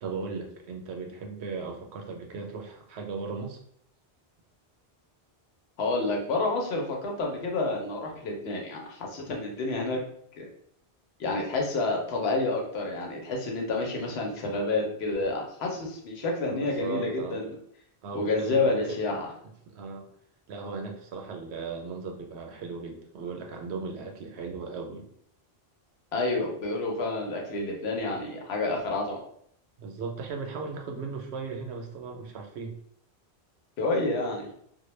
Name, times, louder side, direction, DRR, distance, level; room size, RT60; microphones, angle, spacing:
voice 1, 0.0-3.6 16.5-17.4 18.0-19.0 19.7-20.1 20.5-25.1 29.8-32.7, right 4 dB, 80° right, 3 dB, 0.8 m, -37 dB
voice 2, 5.8-10.0 10.3-10.5 11.2-17.6 18.1-19.3 26.1-29.2 33.8-34.5, left 2 dB, 75° left, 1 dB, 0.9 m, -29 dB
2.2 x 2.1 x 3.0 m, 0.67 s
omnidirectional pair, 1.1 m